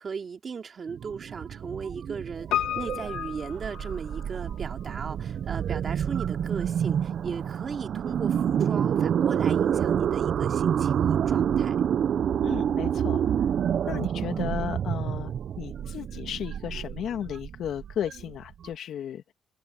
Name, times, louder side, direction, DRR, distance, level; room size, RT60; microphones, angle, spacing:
voice 1, 0.0-11.8, right 6 dB, 45° right, 2.7 m, -37 dB
sound 1, 0.9-18.7, right 8 dB, 60° right, 0.7 m, -28 dB
Piano, 2.5-4.6 4.8-4.9, left 12 dB, 90° left, 2.1 m, -32 dB
voice 2, 12.4-13.2 13.9-19.2, left 10 dB, 70° left, 2.3 m, -34 dB
cardioid pair, 90°, 0 cm